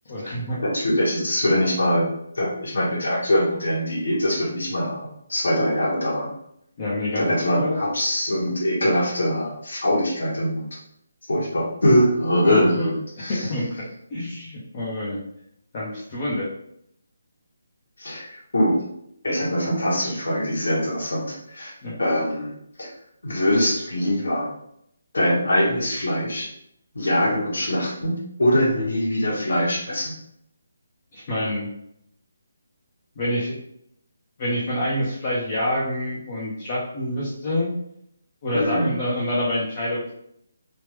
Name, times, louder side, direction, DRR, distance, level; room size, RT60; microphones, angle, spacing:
voice 1, 0.1-0.6 6.8-7.2 7.6-7.8 11.5-11.6 12.4-12.9 13.3-15.2 15.7-16.5 21.8-22.0 31.1-31.7 33.2-33.6 34.4-37.7 38.4-40.1, left 1 dB, 30° left, -6 dB, 0.6 m, -27 dB
voice 2, 0.6-2.1 2.3-6.3 7.1-10.7 11.3-13.5 18.0-18.8 19.2-21.7 22.0-22.5 22.8-22.9 23.2-24.5 25.1-26.5 26.9-30.1 38.5-38.9, equal, 85° left, -5 dB, 1.2 m, -23 dB
3.4 x 2.0 x 3.1 m, 0.74 s
hypercardioid pair, 170°, 0 cm